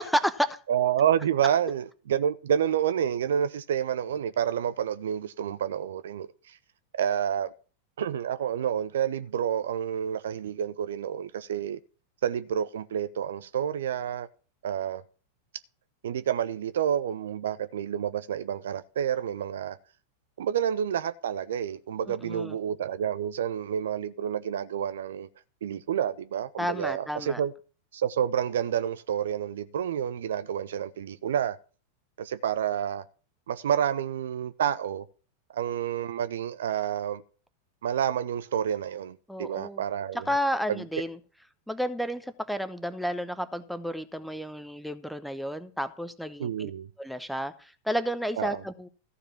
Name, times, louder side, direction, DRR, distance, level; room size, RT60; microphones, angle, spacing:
voice 1, 0.0-0.6 22.1-22.5 26.6-27.4 39.3-39.8 40.1-41.2 41.7-46.7 47.0-48.9, equal, ahead, 0.9 m, -31 dB
voice 2, 0.7-6.6 7.0-7.5 8.0-11.8 12.2-14.3 14.6-15.0 16.0-19.8 20.4-25.3 25.6-27.5 27.9-31.6 32.2-33.0 33.5-35.0 35.5-37.2 37.8-40.3 40.7-40.8 46.4-46.9 48.4-48.6, right 9 dB, 60° right, 0.5 m, -29 dB
14.0 x 4.9 x 7.3 m
figure-of-eight pair, 90°, 0 cm